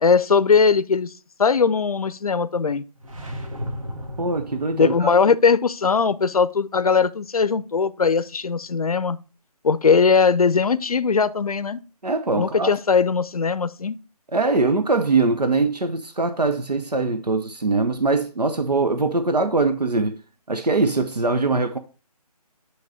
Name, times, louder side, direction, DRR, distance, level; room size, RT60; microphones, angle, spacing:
voice 1, 0.0-1.1 1.4-2.8 4.7-9.2 9.6-11.8 12.4-14.0, left 5 dB, 65° left, 0.5 m, -19 dB
sound 1, 3.0-5.2, equal, 55° right, 1.4 m, -34 dB
voice 2, 4.2-5.1 12.0-12.7 14.3-20.2 20.5-21.8, right 3 dB, 80° right, 0.8 m, -22 dB
8.7 x 3.2 x 4.9 m
figure-of-eight pair, 150°, 20 cm